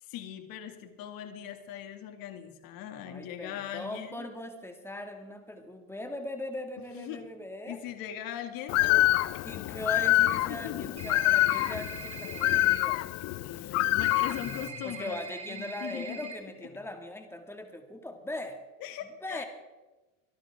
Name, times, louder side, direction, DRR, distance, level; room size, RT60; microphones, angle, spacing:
voice 1, 0.0-4.3 6.9-7.3 7.7-8.8 10.5-11.3 13.4-16.3 18.8-19.4, left 10 dB, 55° left, 7 dB, 2.4 m, -40 dB
voice 2, 3.1-7.8 9.4-13.0 14.7-18.6 19.2-19.4, left 1 dB, 5° left, 5 dB, 2.1 m, -40 dB
Bird, 8.7-14.7, left 17 dB, 40° left, 0.5 m, -26 dB
sound 1, 11.0-12.8 14.0-16.3, right 5 dB, 15° right, 3.5 m, -43 dB
25.0 x 11.5 x 3.7 m, 1.1 s
supercardioid pair, 125°, 41 cm